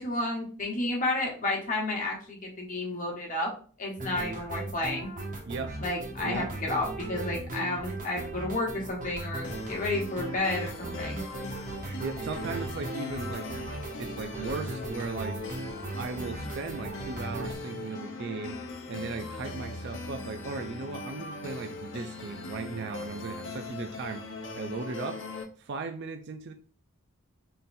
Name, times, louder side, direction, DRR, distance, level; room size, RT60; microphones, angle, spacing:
voice 1, 0.0-3.5 3.8-5.1 5.8-11.2, left 2 dB, 40° left, -2 dB, 1.3 m, -31 dB
sound 1, 4.0-17.5, right 2 dB, 40° right, 0.9 m, -38 dB
sound 2, 9.4-25.4, left 3 dB, 60° left, 0.8 m, -40 dB
voice 2, 12.0-13.5 14.0-15.4 16.0-18.6 18.9-24.2 24.5-25.2 25.6-26.5, right 4 dB, 55° right, 6 dB, 0.4 m, -37 dB
4.1 x 3.8 x 2.6 m, 0.41 s
head